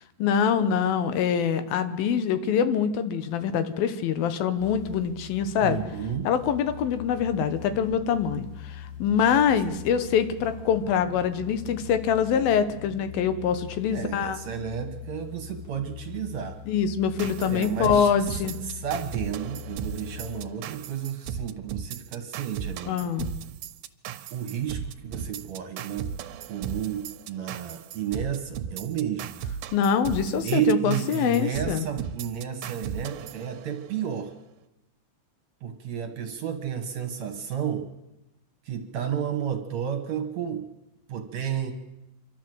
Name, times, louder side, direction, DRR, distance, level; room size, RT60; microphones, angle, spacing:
voice 1, 0.2-5.8 6.2-14.4 16.7-18.6 22.9-23.3 29.7-31.9, left 7 dB, 80° left, 11 dB, 2.8 m, -24 dB
sound 1, 4.6-20.5, left 8 dB, 30° left, 3.7 m, -42 dB
voice 2, 5.6-6.3 9.7-9.8 13.9-16.6 17.4-23.1 24.3-26.1 26.5-29.4 30.4-34.3 35.6-37.9 38.7-40.7 41.1-41.7, right 9 dB, 60° right, 6 dB, 2.3 m, -32 dB
sound 2, 17.2-34.1, right 8 dB, 90° right, 2.7 m, -36 dB
27.0 x 12.5 x 7.8 m, 0.98 s
omnidirectional pair, 4.2 m